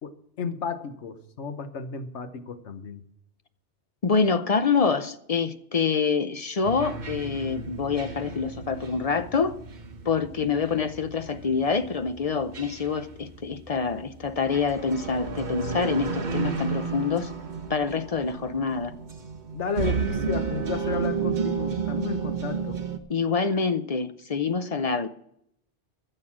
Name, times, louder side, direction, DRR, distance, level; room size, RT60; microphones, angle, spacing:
voice 1, 0.0-3.0 19.5-22.8, left 5 dB, 75° left, 1.4 m, -33 dB
voice 2, 4.0-9.5 10.1-17.3 17.7-19.0 23.1-25.1, left 5 dB, 40° left, 0.6 m, -26 dB
sound 1, 6.6-23.0, right 6 dB, 40° right, 1.1 m, -33 dB
14.0 x 6.7 x 7.3 m
omnidirectional pair, 1.2 m